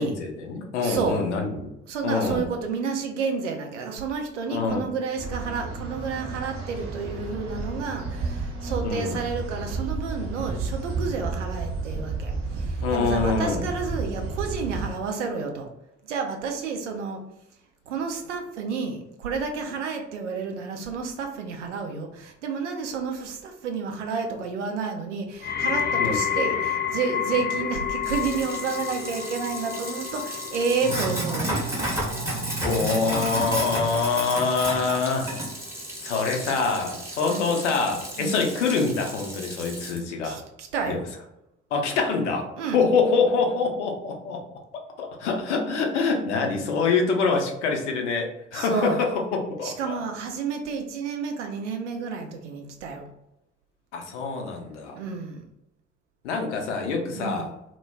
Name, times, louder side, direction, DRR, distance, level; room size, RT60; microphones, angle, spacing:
voice 1, 0.0-1.7 2.0-2.4 4.5-4.8 8.8-9.2 12.8-13.7 26.0-26.2 32.6-35.3 36.0-40.4 40.9-41.0 41.7-42.5 42.7-44.6 45.0-49.2 49.5-50.0 53.9-55.0 56.2-57.5, left 4 dB, 75° left, 2 dB, 0.6 m, -25 dB
voice 2, 0.8-1.3 1.9-15.7 16.0-17.2 17.9-31.6 37.3-37.5 38.2-38.5 40.2-41.1 42.6-42.8 48.5-49.1 49.6-53.0 54.9-55.4 57.1-57.5, right 5 dB, 80° right, 4 dB, 0.5 m, -30 dB
sound 1, 5.2-14.9, right 3 dB, 40° right, 0.7 m, -32 dB
sound 2, 25.4-36.5 36.9-37.4 38.1-38.2, left 7 dB, 30° left, 0.4 m, -31 dB
Sink (filling or washing), 28.0-40.0, right 1 dB, 10° right, 0.8 m, -32 dB
2.2 x 2.1 x 3.2 m, 0.86 s
figure-of-eight pair, 50°, 35 cm